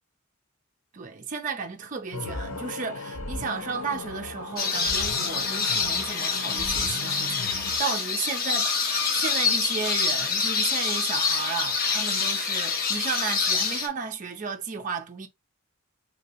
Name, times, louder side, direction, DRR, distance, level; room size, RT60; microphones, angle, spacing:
voice 1, 0.9-8.6 9.2-15.3, right 5 dB, 35° right, 0.5 m, -33 dB
sound 1, 2.1-7.8, left 2 dB, 85° left, 0.7 m, -37 dB
sound 2, 4.6-13.9, left 5 dB, 45° left, 0.8 m, -26 dB
3.3 x 2.8 x 2.9 m
head